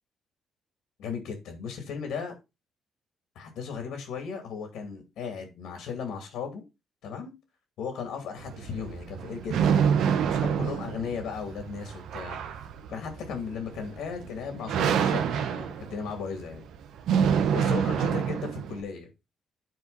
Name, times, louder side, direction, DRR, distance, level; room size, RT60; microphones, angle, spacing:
voice 1, 1.0-2.3 3.3-6.6 7.0-7.3 7.8-9.8 10.2-12.4 12.9-16.6 17.5-19.1, left 6 dB, 90° left, 2.7 m, -36 dB
sound 1, 8.4-18.8, right 7 dB, 85° right, 1.1 m, -27 dB
12.5 x 4.5 x 4.1 m
cardioid pair, 105°, 0 cm